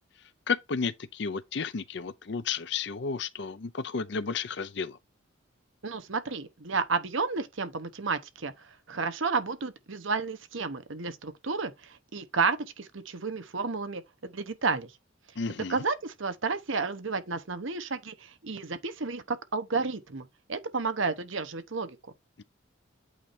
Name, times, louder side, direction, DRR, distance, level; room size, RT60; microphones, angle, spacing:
voice 1, 0.5-5.0 15.4-15.8 22.4-22.5, left 5 dB, 60° left, 0.5 m, -32 dB
voice 2, 5.8-14.9 15.7-22.0, right 4 dB, 75° right, 1.1 m, -32 dB
8.5 x 3.3 x 4.2 m
head